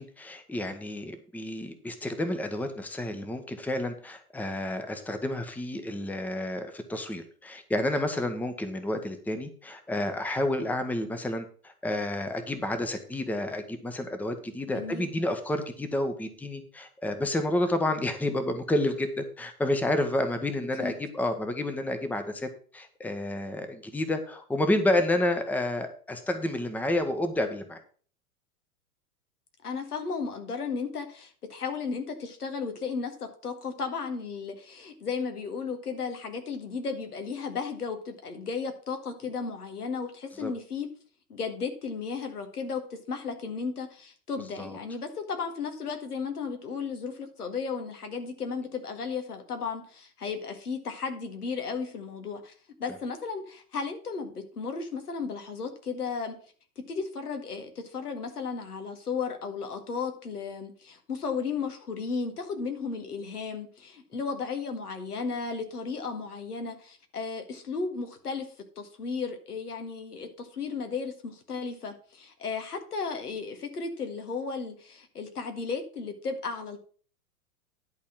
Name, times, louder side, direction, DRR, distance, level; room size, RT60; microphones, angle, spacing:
voice 1, 0.0-27.8 40.4-40.5 44.6-44.8, left 1 dB, 5° left, 8 dB, 1.0 m, -30 dB
voice 2, 14.7-15.1 20.8-20.9 29.6-40.9 41.3-52.5 52.8-56.3 56.8-68.5 68.8-76.8, left 5 dB, 80° left, 5 dB, 1.9 m, -34 dB
11.0 x 4.3 x 7.3 m, 0.43 s
figure-of-eight pair, 95°, 45 cm